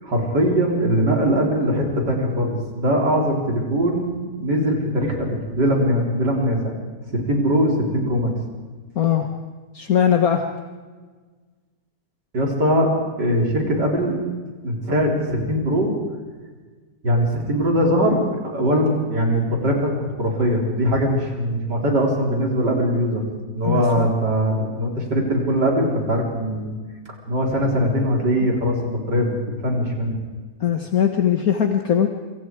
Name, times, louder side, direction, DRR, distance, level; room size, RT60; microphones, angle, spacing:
voice 1, 0.0-6.7 7.1-8.3 12.3-12.9 13.2-14.2 14.6-15.9 17.0-23.2 23.5-26.7 27.3-30.2, equal, 85° right, 0 dB, 4.8 m, -21 dB
voice 2, 8.9-9.3 9.7-10.4 23.6-24.1 28.4-28.6 30.6-32.1, left 9 dB, 60° left, 5 dB, 1.7 m, -20 dB
27.0 x 25.0 x 4.8 m, 1.4 s
omnidirectional pair, 1.8 m